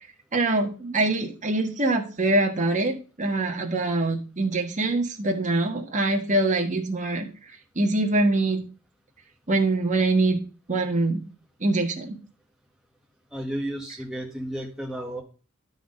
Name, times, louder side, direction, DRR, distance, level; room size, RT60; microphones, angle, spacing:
voice 1, 0.3-7.3 7.7-8.7 9.5-10.4 10.7-11.2 11.6-12.2, right 2 dB, 35° right, 2 dB, 1.4 m, -24 dB
voice 2, 13.3-15.2, right 1 dB, ahead, -2 dB, 1.6 m, -32 dB
12.0 x 4.1 x 5.2 m, 0.35 s
head